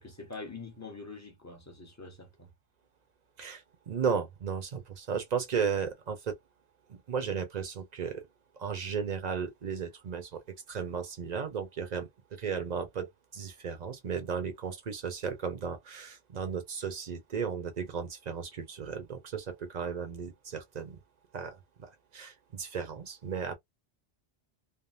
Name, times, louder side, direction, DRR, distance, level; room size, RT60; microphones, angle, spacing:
voice 1, 0.0-2.5, left 3 dB, 15° left, 0.9 m, -45 dB
voice 2, 3.4-6.4 6.9-8.2 8.6-10.4 10.7-21.0 21.3-23.6, right 6 dB, 45° right, 0.8 m, -35 dB
3.4 x 2.0 x 2.5 m
omnidirectional pair, 1.1 m